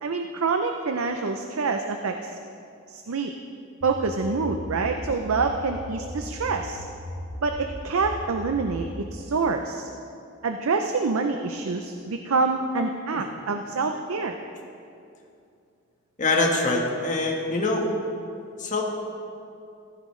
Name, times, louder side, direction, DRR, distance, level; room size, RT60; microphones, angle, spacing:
voice 1, 0.0-2.3 2.9-3.3 3.8-6.8 7.4-9.9 10.4-14.4, right 4 dB, 85° right, 5 dB, 0.6 m, -26 dB
sound 1, 3.8-9.0, equal, 90° left, 1.8 m, -38 dB
voice 2, 16.2-17.9 18.6-18.8, left 2 dB, 40° left, 0 dB, 1.4 m, -24 dB
15.5 x 10.0 x 3.2 m, 2.5 s
head